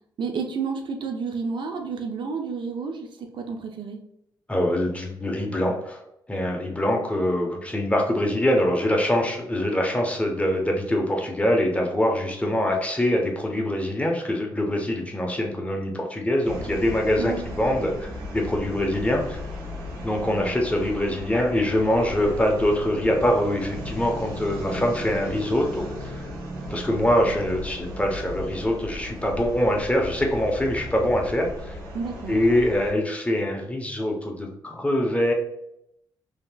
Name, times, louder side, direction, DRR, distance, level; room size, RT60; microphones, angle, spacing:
voice 1, 0.2-4.0 17.2-17.7 31.9-32.4, right 5 dB, 60° right, 4 dB, 0.5 m, -31 dB
voice 2, 4.5-6.0 6.3-19.4 20.0-26.2 26.7-31.8 32.3-35.3, left 1 dB, 15° left, 1 dB, 0.9 m, -24 dB
sound 1, 16.4-32.9, equal, 85° right, 1.1 m, -36 dB
3.1 x 2.8 x 2.3 m, 0.79 s
cardioid pair, 70°, 9 cm